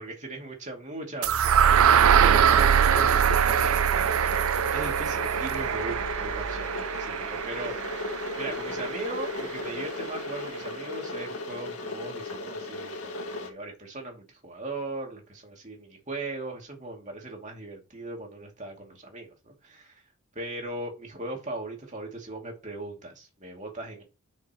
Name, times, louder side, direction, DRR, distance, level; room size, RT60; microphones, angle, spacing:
voice 1, 0.0-7.7 8.4-20.0 20.3-24.0, right 2 dB, 30° right, 2.5 m, -38 dB
sound 1, 1.2-9.2, right 8 dB, 70° right, 0.4 m, -23 dB
Water / Boiling, 2.2-13.5, left 2 dB, 85° left, 1.9 m, -36 dB
10.0 x 5.9 x 3.0 m
head